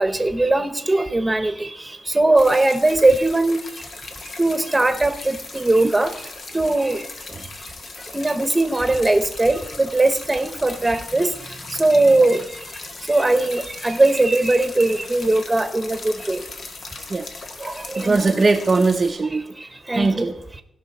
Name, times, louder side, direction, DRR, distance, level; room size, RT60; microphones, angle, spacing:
voice 1, 0.0-3.6 4.4-6.1 6.5-7.1 8.1-11.3 11.7-12.6 13.0-16.4 17.6-18.4 19.6-20.6, right 2 dB, 15° right, 9 dB, 1.3 m, -20 dB
sound 1, 2.4-19.1, left 3 dB, 55° left, 1.7 m, -38 dB
voice 2, 18.0-19.4 19.9-20.3, right 3 dB, 35° right, 3 dB, 0.8 m, -19 dB
16.5 x 5.8 x 4.3 m, 0.77 s
cardioid pair, 90°, 0 cm